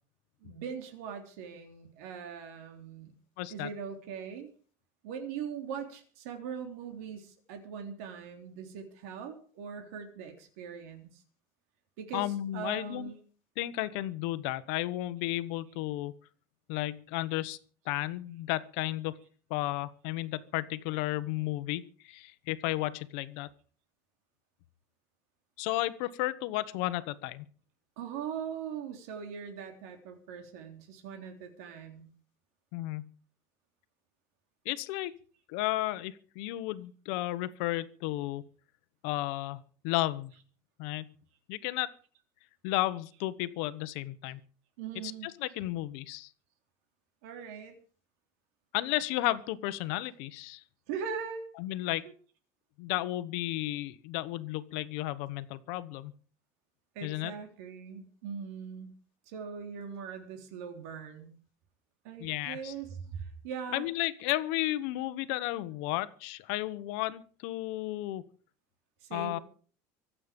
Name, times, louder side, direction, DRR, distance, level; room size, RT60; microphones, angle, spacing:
voice 1, 0.4-3.1 3.5-4.5 5.0-11.2 12.0-13.2 28.0-32.1 44.8-45.3 47.2-47.8 50.9-51.5 57.0-58.9 59.3-61.3 62.0-63.9 69.0-69.4, right 7 dB, 80° right, 4 dB, 3.6 m, -41 dB
voice 2, 3.4-3.7 12.1-13.1 13.6-16.1 16.7-17.6 17.8-19.2 19.5-23.5 25.6-27.4 32.7-33.1 34.6-35.2 35.5-38.4 39.0-40.3 40.8-41.1 41.5-41.9 42.6-44.4 45.0-46.3 48.7-50.6 51.6-52.1 52.8-56.1 57.0-57.3 62.2-62.7 63.7-68.2 69.1-69.4, left 16 dB, 65° left, 14 dB, 1.1 m, -33 dB
24.5 x 8.6 x 5.3 m, 0.42 s
cardioid pair, 175°, 8 cm